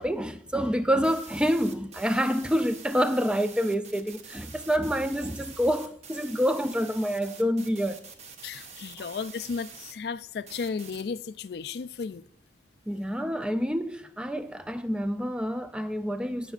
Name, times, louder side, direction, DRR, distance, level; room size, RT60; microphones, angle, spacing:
voice 1, 0.0-8.0 12.9-16.5, equal, 5° right, 0.4 m, -27 dB
sound 1, 1.0-9.9 10.5-11.0, right 5 dB, 40° right, 1.0 m, -46 dB
voice 2, 8.4-12.2, left 5 dB, 60° left, 0.4 m, -34 dB
18.0 x 6.1 x 2.4 m
head